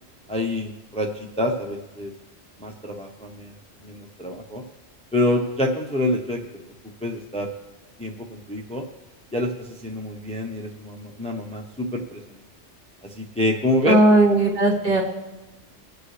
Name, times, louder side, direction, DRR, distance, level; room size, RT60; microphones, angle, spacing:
voice 1, 0.3-2.1 2.6-3.5 3.8-4.6 5.1-6.4 7.0-7.5 8.0-8.8 9.3-12.4 13.1-14.0, left 1 dB, 5° left, 1 dB, 0.8 m, -27 dB
voice 2, 13.9-15.0, right 2 dB, 50° right, -2 dB, 2.2 m, -17 dB
23.5 x 8.1 x 3.3 m, 1.1 s
omnidirectional pair, 1.2 m